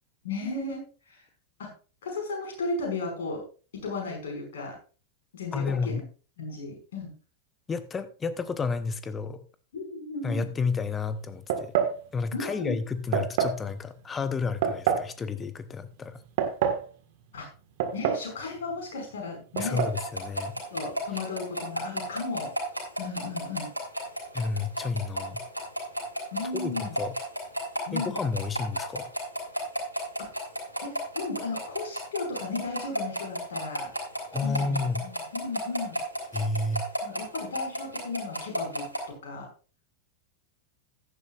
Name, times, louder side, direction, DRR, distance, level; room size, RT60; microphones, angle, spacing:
voice 1, 0.2-1.2 1.6-1.7 2.0-3.4 3.7-4.8 5.3-6.0 6.4-7.1 9.7-10.5 12.3-12.8 17.3-17.5 17.9-19.8 20.7-22.5 23.0-23.7 26.3-27.0 27.9-28.2 30.8-33.9 34.4-36.0 37.0-39.5, left 3 dB, 60° left, 1 dB, 5.5 m, -35 dB
voice 2, 5.5-6.1 7.7-9.4 10.2-11.8 12.1-16.2 19.6-20.6 24.3-25.4 26.5-27.1 27.9-29.1 34.3-35.1 36.3-36.9, left 4 dB, 20° left, 12 dB, 1.0 m, -31 dB
sound 1, 11.5-12.0 13.1-13.6 14.6-15.1 16.1-16.8 17.8-18.3 18.6-18.7 19.6-20.0, right 8 dB, 50° right, 1.6 m, -26 dB
sound 2, 19.6-39.0, equal, 90° left, 3.6 m, -32 dB
15.0 x 11.0 x 2.5 m, 0.36 s
figure-of-eight pair, 90°, 0 cm